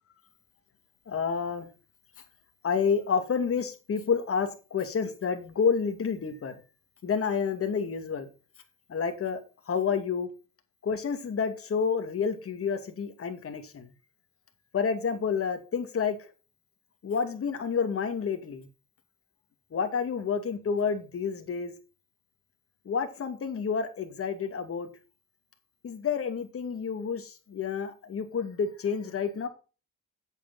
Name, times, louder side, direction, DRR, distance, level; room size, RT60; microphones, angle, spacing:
voice 1, 1.1-1.7 2.6-6.6 7.0-8.3 8.9-9.4 9.7-10.3 10.8-13.9 14.7-16.3 17.0-18.7 19.7-21.7 22.9-24.9 25.8-29.5, left 6 dB, 50° left, 6 dB, 2.5 m, -29 dB
8.5 x 8.4 x 4.1 m, 0.33 s
cardioid pair, 90°, 30 cm